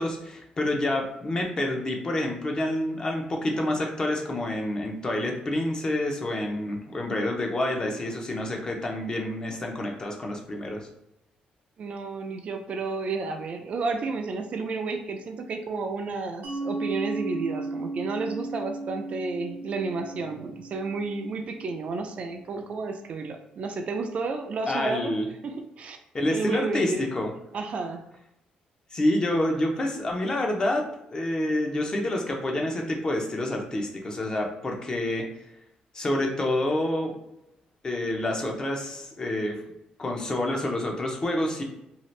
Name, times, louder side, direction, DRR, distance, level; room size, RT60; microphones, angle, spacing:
voice 1, 0.0-10.9 24.7-25.3 26.1-27.3 28.9-35.3 35.9-37.1 37.8-39.6 40.0-41.6, left 1 dB, 30° left, 1 dB, 0.6 m, -28 dB
voice 2, 11.8-25.1 25.4-26.0 26.3-27.0 27.5-28.0, right 4 dB, 50° right, 5 dB, 0.4 m, -31 dB
Mallet percussion, 16.4-21.8, right 2 dB, 80° right, 0.7 m, -35 dB
2.7 x 2.4 x 3.1 m, 0.85 s
cardioid pair, 120°, 3 cm